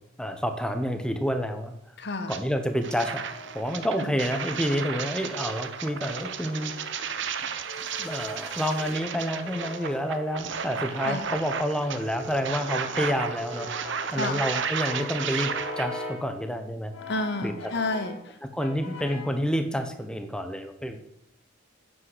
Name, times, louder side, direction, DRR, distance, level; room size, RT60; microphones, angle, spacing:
voice 1, 0.2-1.7 2.3-3.2 3.5-6.7 8.0-13.7 14.1-16.9 17.4-17.7 18.5-21.0, equal, 5° left, 8 dB, 1.0 m, -29 dB
voice 2, 2.0-2.3 4.0-4.1 11.0-11.3 14.1-14.4 17.1-18.4, left 2 dB, 55° left, 9 dB, 1.3 m, -30 dB
Brass instrument, 2.2-4.2 4.9-7.0 7.7-16.3 16.9-18.3 18.6-19.4, left 2 dB, 90° left, 2.7 m, -42 dB
sound 1, 2.3-2.4 2.8-15.9, right 6 dB, 60° right, 0.9 m, -33 dB
sound 2, 7.4-9.0, right 3 dB, 80° right, 4.0 m, -49 dB
9.4 x 7.7 x 7.9 m, 0.78 s
head